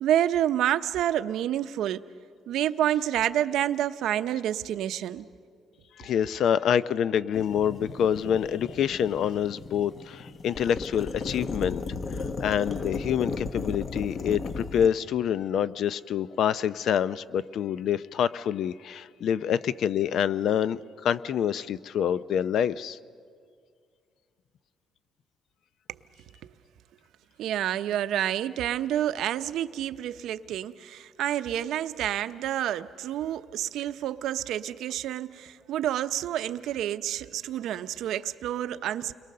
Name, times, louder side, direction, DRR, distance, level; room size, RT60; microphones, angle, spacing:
voice 1, 0.0-2.0 2.5-5.2 26.4-26.5 27.4-39.1, right 11 dB, 80° right, 11 dB, 0.7 m, -28 dB
voice 2, 6.0-11.8 12.1-23.0, left 9 dB, 65° left, 16 dB, 0.6 m, -27 dB
sound 1, 7.3-14.9, left 4 dB, 35° left, 0.9 m, -35 dB
29.5 x 22.5 x 6.7 m, 2.1 s
cardioid pair, 125°, 0 cm